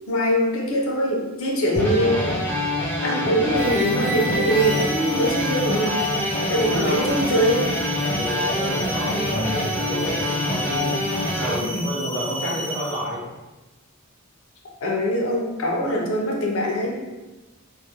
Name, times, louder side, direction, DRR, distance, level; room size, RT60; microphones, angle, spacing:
voice 1, 0.1-2.3 3.0-6.0 6.5-7.7 11.6-11.9 14.8-17.0, equal, 70° left, -1 dB, 0.5 m, -23 dB
sound 1, 1.8-11.6, left 1 dB, 10° left, 0.4 m, -25 dB
sound 2, 3.6-13.1, equal, 55° right, 0.6 m, -32 dB
voice 2, 6.5-7.1 8.0-11.0 11.3-13.2, equal, 20° right, -13 dB, 0.7 m, -30 dB
2.3 x 2.1 x 2.8 m, 1.1 s
head